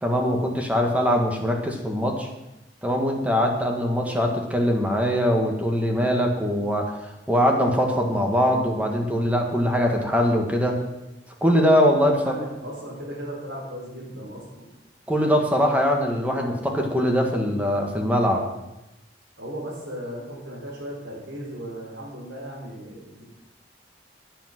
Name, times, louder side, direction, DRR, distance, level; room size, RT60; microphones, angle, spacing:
voice 1, 0.0-2.3 2.8-6.9 7.3-10.8 11.4-12.3 15.1-18.4, equal, 10° right, 1 dB, 1.9 m, -22 dB
voice 2, 11.9-14.7 19.4-23.2, equal, 90° right, -2 dB, 4.6 m, -36 dB
10.5 x 10.5 x 6.1 m, 0.94 s
head